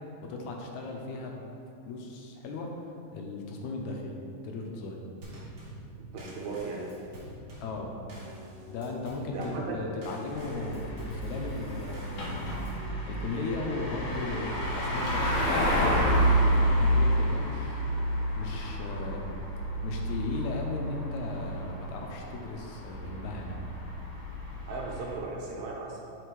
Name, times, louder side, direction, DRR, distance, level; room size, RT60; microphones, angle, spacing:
voice 1, 0.2-1.4 1.9-5.0 5.4-5.5 7.6-7.9 8.7-12.5 13.1-18.0 18.4-19.2 19.8-23.6, left 3 dB, 80° left, 1 dB, 2.0 m, -37 dB
Drum kit / Snare drum / Bass drum, 5.2-12.9, equal, 45° right, 1.5 m, -46 dB
voice 2, 6.1-6.9 9.3-9.8 24.7-26.0, right 3 dB, 75° right, -2 dB, 2.0 m, -36 dB
sound 1, 10.3-25.1, equal, 60° left, 1.8 m, -29 dB
8.1 x 5.0 x 3.1 m, 2.6 s
omnidirectional pair, 3.4 m